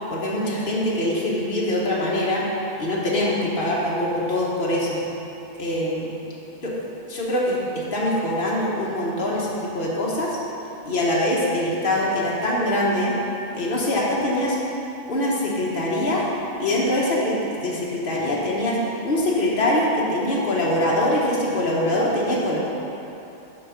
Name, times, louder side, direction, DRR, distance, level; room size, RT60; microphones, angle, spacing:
voice 1, 0.1-2.5 2.8-5.0 5.6-6.1 6.6-6.7 7.1-10.4 10.9-13.1 13.5-14.6 15.1-16.2 16.6-17.4 17.6-18.8 19.0-22.6, left 1 dB, 45° left, -5 dB, 1.5 m, -23 dB
7.6 x 5.9 x 5.2 m, 2.8 s
omnidirectional pair, 1.3 m